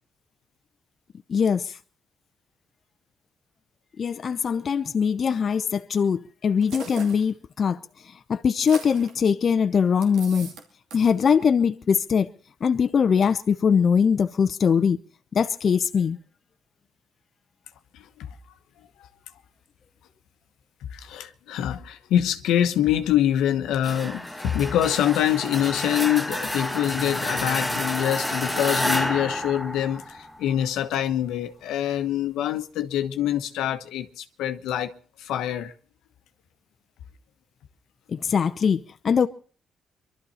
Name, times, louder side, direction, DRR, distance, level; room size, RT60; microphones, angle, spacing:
voice 1, 1.3-1.8 4.0-7.8 8.3-10.5 10.9-12.3 12.6-15.0 15.3-16.2 38.1-39.3, left 6 dB, 50° left, 0.7 m, -22 dB
sound 1, 6.6-7.3 8.5-9.2 10.0-10.6 10.9-11.2, right 4 dB, 85° right, 2.7 m, -39 dB
voice 2, 17.9-18.3 20.9-34.9 35.2-35.7, left 11 dB, 90° left, 1.1 m, -25 dB
sound 2, 23.8-30.5, left 1 dB, ahead, 1.5 m, -29 dB
23.5 x 12.5 x 4.3 m
cardioid pair, 90°, 0 cm